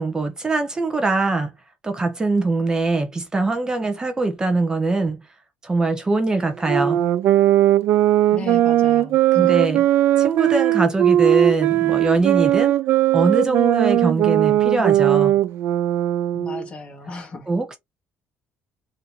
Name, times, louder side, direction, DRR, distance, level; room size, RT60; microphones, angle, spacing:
voice 1, 0.0-1.5 1.8-5.3 5.6-7.0 9.3-9.8 10.2-12.7 13.1-15.4 17.5-17.8, right 3 dB, 15° right, 0.7 m, -22 dB
sound 1, 6.6-16.7, right 13 dB, 70° right, 0.4 m, -18 dB
voice 2, 8.3-9.5 16.3-17.5, left 3 dB, 25° left, 1.3 m, -35 dB
3.8 x 2.6 x 4.2 m
cardioid pair, 150°, 4 cm